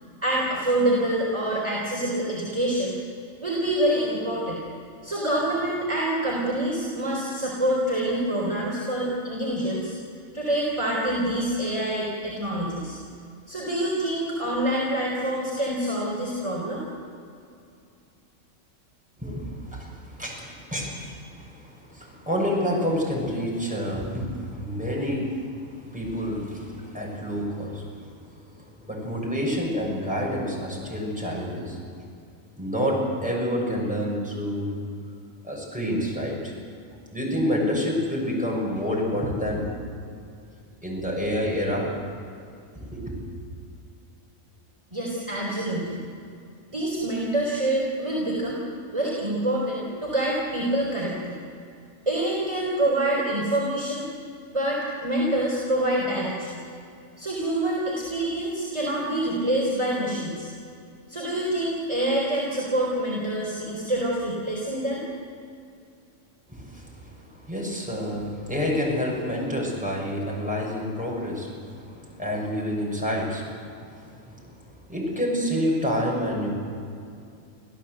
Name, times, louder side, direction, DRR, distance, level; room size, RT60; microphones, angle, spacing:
voice 1, 0.2-2.9 3.4-4.6 5.0-9.9 10.3-13.0 13.5-16.8 44.9-46.0 46.7-48.6 48.9-51.3 52.1-54.0 54.5-56.6 57.2-60.5 61.1-65.0, right 1 dB, 25° right, -4 dB, 4.0 m, -26 dB
voice 2, 19.2-25.5 25.8-28.0 28.9-31.8 32.6-34.7 35.4-36.5 37.1-39.6 40.8-41.9 42.7-43.2 66.5-67.1 67.5-73.5 74.0-74.5 74.9-76.5, equal, 5° right, -3 dB, 6.4 m, -28 dB
26.5 x 16.0 x 8.0 m, 2.5 s
omnidirectional pair, 1.4 m